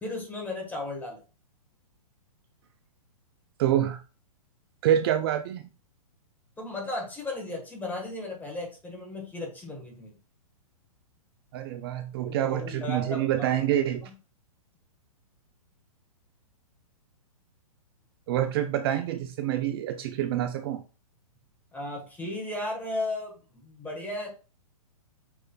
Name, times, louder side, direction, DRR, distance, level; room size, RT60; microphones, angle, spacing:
voice 1, 0.0-1.2 6.6-10.1 12.2-13.5 21.7-24.3, left 2 dB, 10° left, 1.3 m, -35 dB
voice 2, 3.6-4.0 4.8-5.7 11.5-14.1 18.3-20.8, right 11 dB, 40° right, 0.4 m, -27 dB
5.8 x 3.1 x 2.2 m
hypercardioid pair, 125°, 19 cm